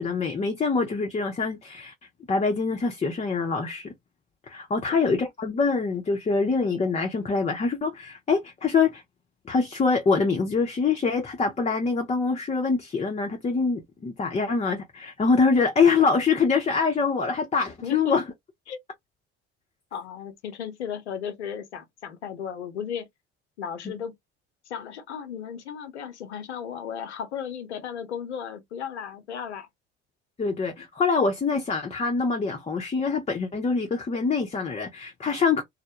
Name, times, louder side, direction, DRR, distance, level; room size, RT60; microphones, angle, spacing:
voice 1, 0.0-1.9 2.3-3.9 4.5-9.0 9.5-18.2 30.4-35.6, left 4 dB, 20° left, 0.6 m, -24 dB
voice 2, 19.9-23.1 23.6-24.1 24.7-29.7, left 8 dB, 90° left, 0.6 m, -35 dB
2.1 x 2.0 x 2.8 m
hypercardioid pair, 55°, 33 cm